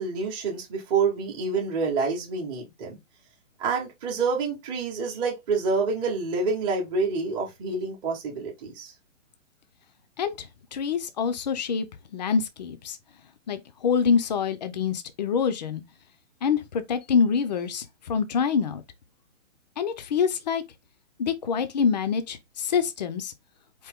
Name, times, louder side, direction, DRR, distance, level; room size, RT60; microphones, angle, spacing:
voice 1, 0.0-3.0 3.6-8.9, right 4 dB, 10° right, 1.0 m, -27 dB
voice 2, 10.7-11.9 12.1-13.0 13.5-15.8 16.4-18.8 19.8-20.6 21.2-23.3, left 6 dB, 35° left, 0.6 m, -26 dB
4.6 x 2.9 x 3.5 m
hypercardioid pair, 155°, 38 cm